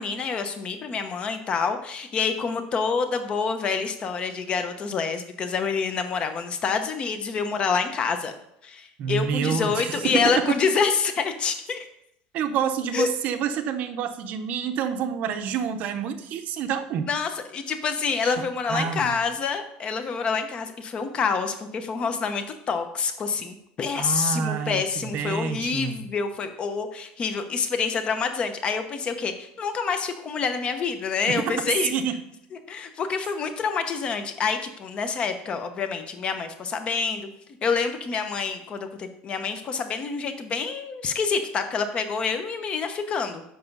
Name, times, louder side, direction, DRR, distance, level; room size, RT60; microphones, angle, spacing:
voice 1, 0.0-8.3 8.6-11.9 12.9-13.1 17.1-31.9 32.7-37.3 37.6-43.4, left 5 dB, 25° left, 8 dB, 0.9 m, -27 dB
voice 2, 9.0-10.6 12.3-17.1 18.2-18.3 18.7-19.2 24.0-26.1 31.3-31.6 31.9-32.3, right 7 dB, 45° right, 9 dB, 0.8 m, -28 dB
7.5 x 5.9 x 5.4 m, 0.77 s
cardioid pair, 160°, 4 cm